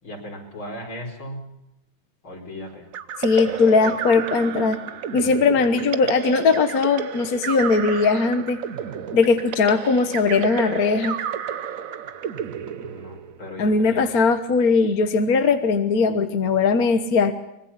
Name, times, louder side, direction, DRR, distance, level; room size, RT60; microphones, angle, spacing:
voice 1, 0.0-1.5 2.2-2.9 3.4-3.9 12.8-14.0, left 1 dB, 75° left, 1 dB, 5.7 m, -37 dB
sound 1, 2.9-13.5, right 8 dB, 55° right, 1.1 m, -31 dB
voice 2, 3.2-4.8 5.1-8.6 9.1-11.2 13.6-17.3, left 4 dB, 50° left, 7 dB, 1.6 m, -19 dB
24.5 x 21.5 x 5.8 m, 0.89 s
omnidirectional pair, 2.2 m